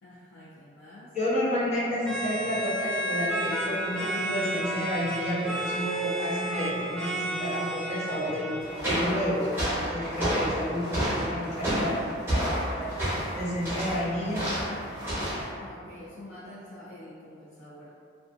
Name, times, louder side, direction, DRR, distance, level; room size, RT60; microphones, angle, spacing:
voice 1, 0.0-1.1 15.6-17.9, left 1 dB, 80° left, -11 dB, 0.6 m, -47 dB
voice 2, 1.1-8.5 8.8-11.9 12.7-12.9 13.3-14.4, equal, 35° left, -10 dB, 0.7 m, -30 dB
sound 1, 2.0-8.9, right 1 dB, 5° left, 0.3 m, -32 dB
sound 2, 8.6-15.5, equal, 15° right, 0.8 m, -30 dB
2.4 x 2.3 x 2.5 m, 2.3 s
head